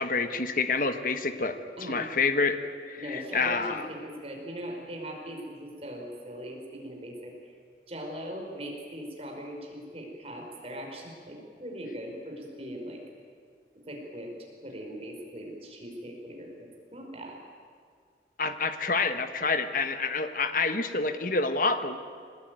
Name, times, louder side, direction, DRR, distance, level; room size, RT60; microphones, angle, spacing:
voice 1, 0.0-1.6 1.9-2.6 2.9-3.9 18.4-22.0, left 4 dB, 50° left, 9 dB, 1.3 m, -28 dB
voice 2, 1.8-2.1 3.0-7.5 7.9-13.0 13.9-14.3 14.6-17.4, equal, 35° right, 1 dB, 5.0 m, -40 dB
22.5 x 19.0 x 9.4 m, 2.1 s
head